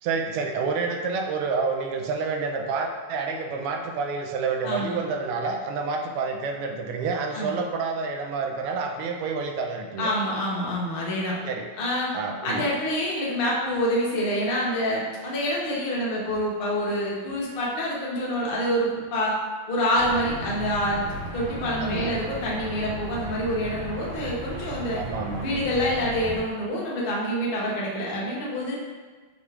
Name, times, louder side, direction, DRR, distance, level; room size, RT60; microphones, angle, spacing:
voice 1, 0.0-10.1 11.4-11.7 12.1-12.7 21.8-22.2 25.0-25.5, right 4 dB, 85° right, 3 dB, 1.5 m, -28 dB
voice 2, 10.0-11.4 11.8-12.1 12.4-19.4 19.7-21.1 21.3-25.0 25.4-28.7, equal, 80° left, -4 dB, 0.5 m, -26 dB
sound 1, 19.9-26.4, right 1 dB, 35° right, 0.8 m, -35 dB
6.3 x 2.4 x 3.3 m, 1.4 s
omnidirectional pair, 2.4 m